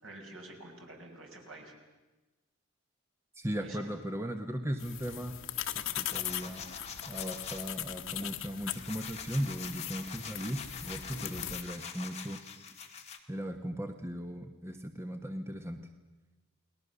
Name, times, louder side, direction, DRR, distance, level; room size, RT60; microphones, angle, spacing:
voice 1, 0.0-1.8 3.6-3.9, right 2 dB, 65° right, 1 dB, 5.1 m, -48 dB
voice 2, 3.4-5.4 5.7-6.6 7.1-12.4 13.3-15.8, equal, 10° right, 6 dB, 1.1 m, -37 dB
sound 1, 4.8-11.6, left 11 dB, 65° left, 1.3 m, -40 dB
sound 2, 6.0-7.6 8.2-13.2, left 6 dB, 30° left, 2.0 m, -45 dB
29.5 x 20.0 x 6.8 m, 1.1 s
head